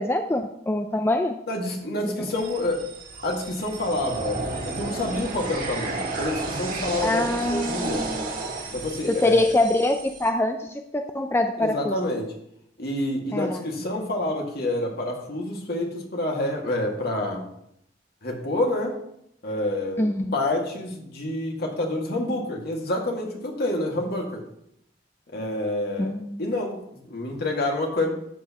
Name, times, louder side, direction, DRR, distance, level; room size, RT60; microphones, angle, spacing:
voice 1, 0.0-1.3 2.0-2.1 7.0-8.3 9.1-12.0 13.3-13.6 20.0-20.3 26.0-26.4, left 1 dB, 15° left, 5 dB, 0.5 m, -24 dB
voice 2, 1.5-2.8 3.2-8.1 8.7-9.5 11.6-12.3 12.8-17.5 18.2-19.0 19.4-24.4 25.3-26.1 26.4-28.1, left 1 dB, 60° left, 0 dB, 2.1 m, -28 dB
sound 1, 2.3-10.3, right 3 dB, 50° right, 2.0 m, -33 dB
13.0 x 8.4 x 3.0 m, 0.76 s
head